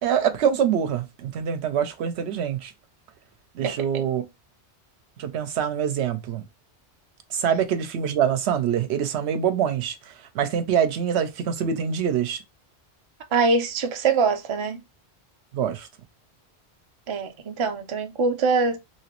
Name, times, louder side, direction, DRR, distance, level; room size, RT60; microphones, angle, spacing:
voice 1, 0.0-2.7 3.5-4.2 5.2-6.4 7.3-12.4 15.5-15.9, right 8 dB, 80° right, 0.8 m, -25 dB
voice 2, 3.6-4.0 13.3-14.8 17.1-18.8, right 4 dB, 40° right, 0.4 m, -23 dB
3.0 x 2.9 x 2.9 m
omnidirectional pair, 1.1 m